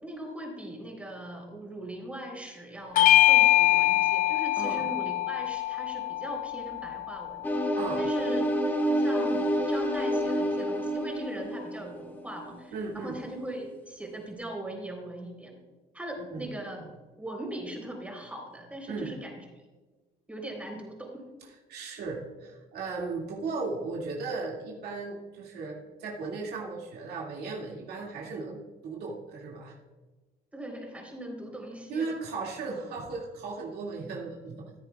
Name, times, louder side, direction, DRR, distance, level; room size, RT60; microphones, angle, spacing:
voice 1, 0.0-7.5 8.0-8.4 8.9-15.6 15.9-16.9 17.2-19.5 20.3-21.3 30.5-32.2, right 1 dB, 10° right, 0 dB, 3.6 m, -40 dB
Bell / Doorbell, 3.0-7.8, left 15 dB, 55° left, 0.4 m, -24 dB
voice 2, 4.6-4.9 7.8-8.0 12.7-13.2 16.3-16.5 18.9-19.1 21.7-29.8 31.9-34.7, right 4 dB, 70° right, -2 dB, 2.2 m, -36 dB
sound 1, 7.4-12.6, equal, 10° left, 1.3 m, -28 dB
14.5 x 9.7 x 2.3 m, 1.3 s
cardioid pair, 110°, 17 cm